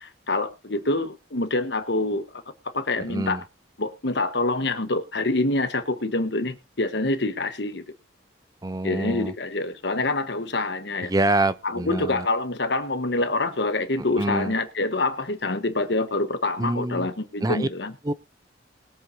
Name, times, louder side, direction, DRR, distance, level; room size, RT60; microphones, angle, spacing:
voice 1, 0.0-2.4 2.7-3.4 3.8-7.8 8.8-11.1 11.6-17.9, left 2 dB, 60° left, 1.3 m, -26 dB
voice 2, 3.1-3.4 8.6-9.3 11.1-12.3 14.2-14.5 16.6-17.1 17.4-17.7 18.0-18.1, right 2 dB, 20° right, 0.5 m, -26 dB
21.0 x 8.0 x 2.7 m
head